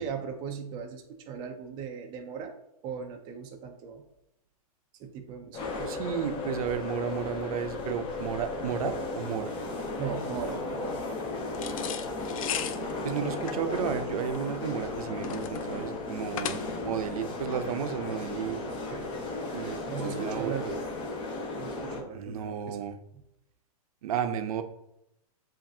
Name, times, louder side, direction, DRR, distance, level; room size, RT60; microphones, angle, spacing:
voice 1, 0.0-2.5 2.8-4.0 5.0-5.9 10.0-11.2 18.7-20.8 21.6-22.8 23.1-23.2, right 6 dB, 25° right, 4 dB, 0.4 m, -38 dB
sound 1, 5.5-22.0, left 2 dB, 25° left, 0.9 m, -35 dB
voice 2, 5.9-9.6 13.0-18.6 19.5-20.7 22.1-23.0 24.0-24.6, right 8 dB, 70° right, 9 dB, 0.6 m, -33 dB
sound 2, 11.5-17.0, left 9 dB, 60° left, 0.5 m, -37 dB
7.4 x 2.6 x 2.7 m, 0.82 s
hypercardioid pair, 145°, 19 cm